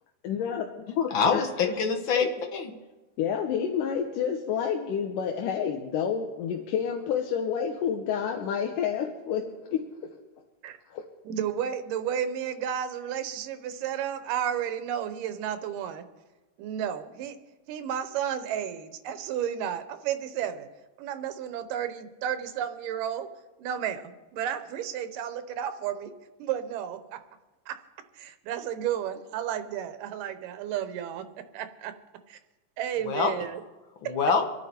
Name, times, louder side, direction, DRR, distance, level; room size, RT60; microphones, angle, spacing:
voice 1, 0.2-1.4 2.2-2.3 3.2-9.8 10.9-11.0, left 7 dB, 80° left, 2 dB, 2.5 m, -29 dB
voice 2, 1.1-2.7 33.1-33.3 34.0-34.4, left 5 dB, 65° left, 4 dB, 1.2 m, -25 dB
voice 3, 11.2-16.1 16.6-17.4 17.7-20.7 21.0-23.3 23.6-26.1 26.4-27.2 27.7-27.8 28.1-31.9 32.3-32.4 32.8-33.6 34.0-34.2, right 9 dB, 90° right, 10 dB, 2.5 m, -32 dB
26.0 x 9.6 x 4.3 m, 1.2 s
omnidirectional pair, 3.7 m